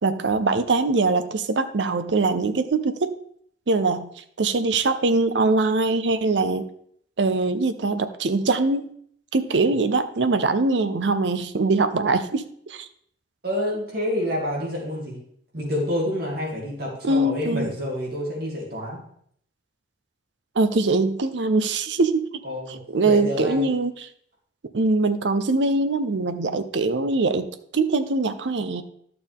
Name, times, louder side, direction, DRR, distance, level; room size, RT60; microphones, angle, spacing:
voice 1, 0.0-3.1 3.7-4.1 4.4-6.6 7.2-8.9 9.3-12.4 12.7-12.8 17.0-17.7 20.6-22.3 22.7-24.1 24.7-28.8, right 3 dB, 80° right, 10 dB, 0.6 m, -22 dB
voice 2, 13.4-15.2 15.5-19.0 22.4-22.8 23.0-23.7, left 1 dB, 60° right, -3 dB, 2.6 m, -28 dB
11.5 x 6.8 x 3.6 m, 0.66 s
head